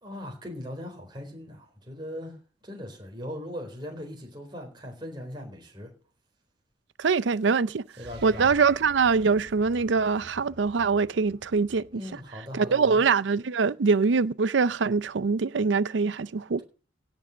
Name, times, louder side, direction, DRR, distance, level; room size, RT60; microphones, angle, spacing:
voice 1, 0.0-2.4 2.6-5.9 8.0-8.6 11.9-13.0, equal, 25° right, 4.1 m, -39 dB
voice 2, 7.0-7.8 8.2-12.0 12.5-16.6, right 5 dB, 80° right, 0.5 m, -23 dB
sound 1, 7.9-12.3, right 2 dB, 60° right, 1.6 m, -48 dB
17.0 x 6.1 x 6.3 m
head